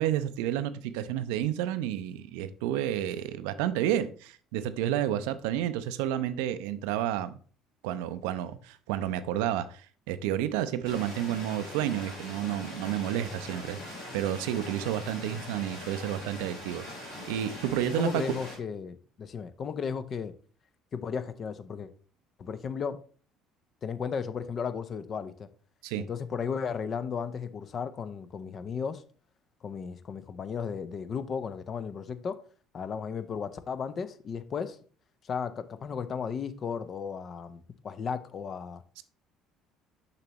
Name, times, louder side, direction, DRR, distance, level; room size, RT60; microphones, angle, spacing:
voice 1, 0.0-7.4 7.8-13.8 14.1-16.9 17.3-18.2 25.8-26.0 39.0-39.1, right 11 dB, 70° right, 0.5 m, -30 dB
sound 1, 10.8-18.6, left 1 dB, 85° left, 3.2 m, -42 dB
voice 2, 18.0-20.3 20.9-21.9 22.4-23.0 23.8-25.5 26.0-29.0 29.6-32.4 32.7-34.8 35.2-38.8, left 6 dB, 40° left, 0.7 m, -35 dB
6.8 x 5.8 x 3.0 m
figure-of-eight pair, 60°, 0 cm